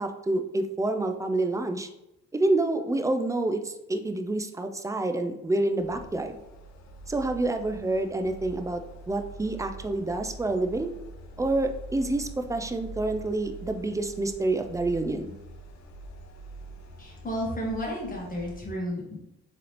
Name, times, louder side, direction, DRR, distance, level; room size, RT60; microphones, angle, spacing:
voice 1, 0.0-1.9 2.3-6.4 7.1-8.8 9.1-10.9 11.4-15.2, right 2 dB, 10° right, 6 dB, 0.3 m, -28 dB
sound 1, 5.8-18.6, right 2 dB, 65° left, 0.6 m, -44 dB
voice 2, 17.0-19.2, equal, 30° left, -2 dB, 1.5 m, -32 dB
3.7 x 3.3 x 2.9 m, 0.88 s
cardioid pair, 90°, 30 cm